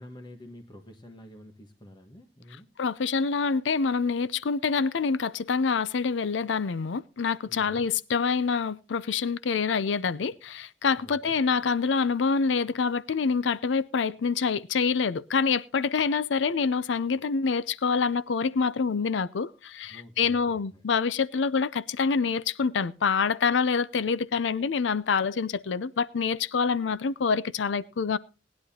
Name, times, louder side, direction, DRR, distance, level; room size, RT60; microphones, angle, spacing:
voice 1, 0.0-2.7 7.5-7.9 11.0-11.4 19.9-20.8, left 1 dB, 25° left, 1.3 m, -48 dB
voice 2, 2.8-28.2, left 5 dB, 80° left, 0.5 m, -26 dB
19.5 x 10.5 x 2.8 m
head